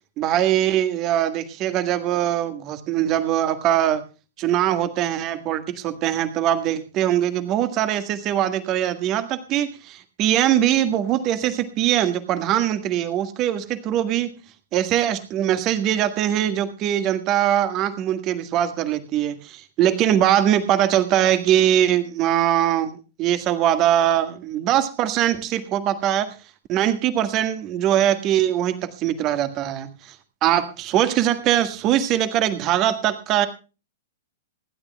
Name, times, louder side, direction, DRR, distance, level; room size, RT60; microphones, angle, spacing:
voice 1, 0.2-4.0 4.4-14.3 14.7-26.3 26.7-29.9 30.4-33.5, right 11 dB, 35° right, 10 dB, 1.7 m, -22 dB
26.0 x 12.0 x 2.3 m, 0.33 s
figure-of-eight pair, 105°, 0 cm